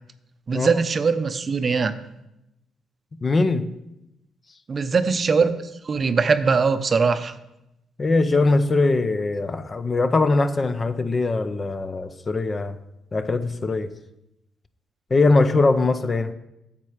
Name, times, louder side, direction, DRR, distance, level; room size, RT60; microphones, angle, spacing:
voice 1, 0.5-2.0 4.7-5.5 5.8-7.3, right 5 dB, 40° right, 11 dB, 0.6 m, -21 dB
voice 2, 3.2-3.7 8.0-12.8 13.1-13.9 15.1-16.3, left 3 dB, 30° left, 11 dB, 0.6 m, -21 dB
9.1 x 7.4 x 4.9 m, 0.87 s
cardioid pair, 90°, 0 cm